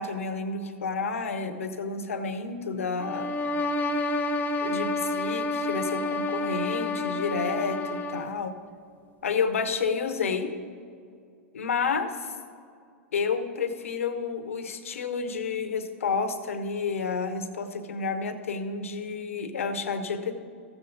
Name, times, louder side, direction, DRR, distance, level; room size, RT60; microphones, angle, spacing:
voice 1, 0.0-3.3 4.6-8.5 9.2-10.5 11.5-12.3 13.1-20.4, left 5 dB, 90° left, 10 dB, 0.8 m, -30 dB
sound 1, 3.0-8.4, left 2 dB, 25° left, 0.7 m, -29 dB
14.0 x 7.1 x 3.9 m, 2.3 s
hypercardioid pair, 110°, 7 cm